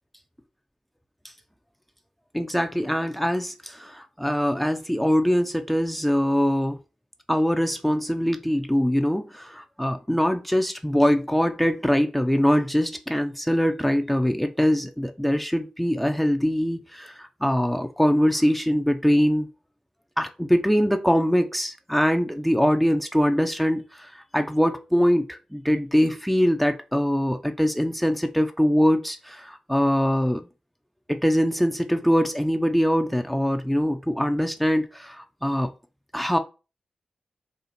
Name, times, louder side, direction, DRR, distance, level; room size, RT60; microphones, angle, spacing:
voice 1, 2.3-6.8 7.3-19.5 20.2-30.4 31.1-35.7 36.1-36.4, equal, 5° left, 6 dB, 0.5 m, -23 dB
4.2 x 2.4 x 4.0 m, 0.31 s
cardioid pair, 45°, 2 cm